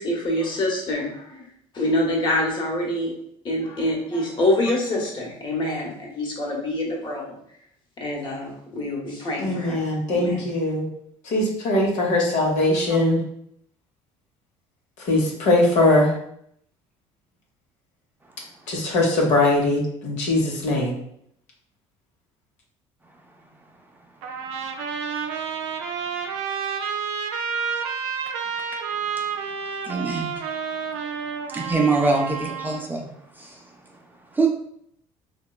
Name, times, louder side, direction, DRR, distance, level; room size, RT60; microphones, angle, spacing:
voice 1, 0.0-1.4 1.7-3.1 3.4-7.3 8.0-9.8 10.1-10.4, left 1 dB, 40° left, -2 dB, 1.0 m, -25 dB
voice 2, 9.4-10.9 11.2-13.2 15.0-16.1 18.7-20.9, left 2 dB, 65° left, -1 dB, 0.8 m, -21 dB
Trumpet, 24.2-32.9, right 6 dB, 85° right, 0.4 m, -30 dB
voice 3, 29.9-30.4 31.5-33.1 33.4-33.6 34.3-34.5, right 3 dB, 15° right, 1 dB, 0.4 m, -23 dB
2.8 x 2.2 x 2.2 m, 0.69 s
supercardioid pair, 85°, 13 cm